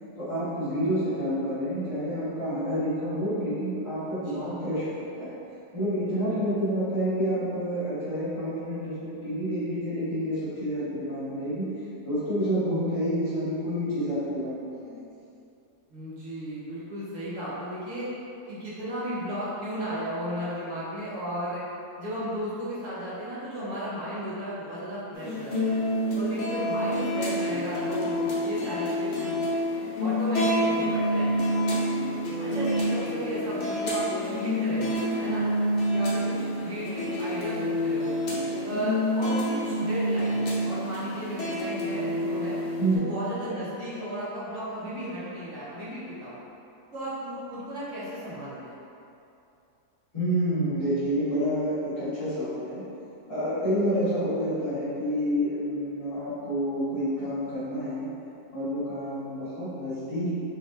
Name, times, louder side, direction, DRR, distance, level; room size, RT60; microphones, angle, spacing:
voice 1, 0.2-5.3 5.7-11.7 12.0-15.0 42.8-43.1 50.1-52.8 53.3-58.1 58.5-60.3, equal, 20° left, -15 dB, 1.4 m, -28 dB
voice 2, 15.9-18.1 18.4-21.6 22.0-25.8 26.1-29.4 30.0-31.7 32.4-35.5 35.9-38.1 38.6-42.6 42.9-46.4 46.9-48.8, equal, 55° right, -11 dB, 1.4 m, -34 dB
sound 1, 25.2-43.0, equal, 50° left, 0.8 m, -28 dB
4.1 x 3.2 x 2.6 m, 2.7 s
omnidirectional pair, 1.7 m